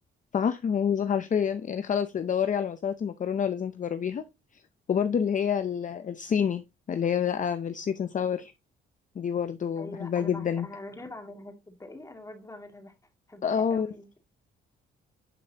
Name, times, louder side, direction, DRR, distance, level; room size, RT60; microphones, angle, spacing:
voice 1, 0.3-4.2 4.5-4.6 4.9-8.5 9.2-10.7 13.4-13.9, left 7 dB, 40° left, 0.7 m, -28 dB
voice 2, 9.8-12.9 13.3-14.3, left 2 dB, 15° left, 2.6 m, -43 dB
11.0 x 5.3 x 2.9 m
cardioid pair, 90°, 20 cm